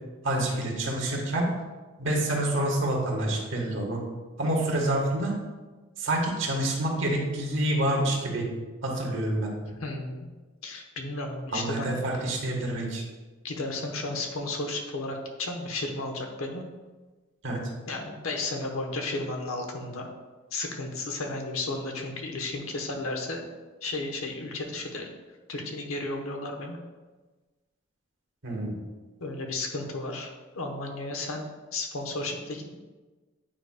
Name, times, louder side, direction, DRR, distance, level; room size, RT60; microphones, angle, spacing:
voice 1, 0.2-1.5 2.0-4.0 4.4-5.3 6.0-8.5 8.8-9.5 11.5-13.0 17.4-17.6 28.4-28.8, right 1 dB, 60° right, 0 dB, 1.3 m, -27 dB
voice 2, 9.7-10.3 10.6-11.9 13.4-16.6 17.9-20.1 20.5-23.4 23.8-25.1 25.5-26.8 29.2-31.5 31.7-32.7, left 2 dB, 90° left, 3 dB, 0.9 m, -33 dB
8.9 x 4.9 x 2.2 m, 1.3 s
head